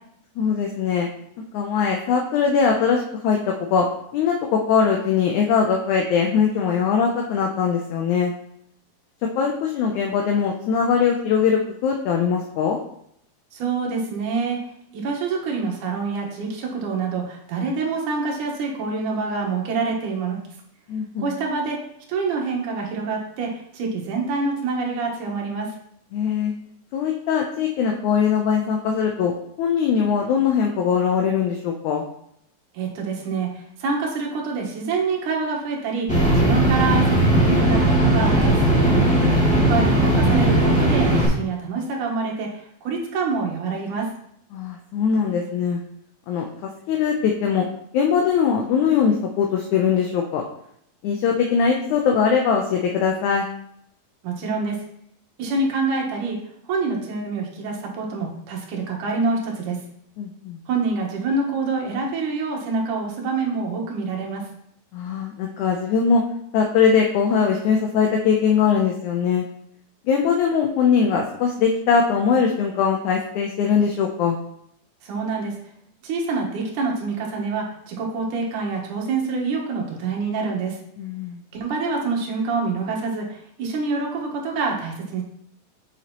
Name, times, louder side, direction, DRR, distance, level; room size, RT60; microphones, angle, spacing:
voice 1, 0.4-1.1 1.5-3.4 3.7-3.9 4.1-8.3 9.4-12.8 20.9-21.3 26.1-26.5 26.9-29.3 29.6-32.0 44.5-45.8 46.3-47.7 47.9-50.4 51.0-53.5 60.2-60.6 64.9-66.2 66.5-69.4 70.1-74.4 81.0-81.4, left 6 dB, 75° left, 1 dB, 1.8 m, -21 dB
voice 2, 13.5-14.6 14.9-20.4 21.2-21.8 22.1-25.7 32.7-38.6 39.5-44.1 54.2-54.8 55.4-56.4 56.7-59.8 60.7-64.5 75.0-75.6 76.0-80.8 81.6-85.2, right 4 dB, 65° right, -1 dB, 2.7 m, -26 dB
sound 1, 36.1-41.3, right 1 dB, 5° left, 1.3 m, -18 dB
7.8 x 6.4 x 3.0 m, 0.71 s
omnidirectional pair, 4.1 m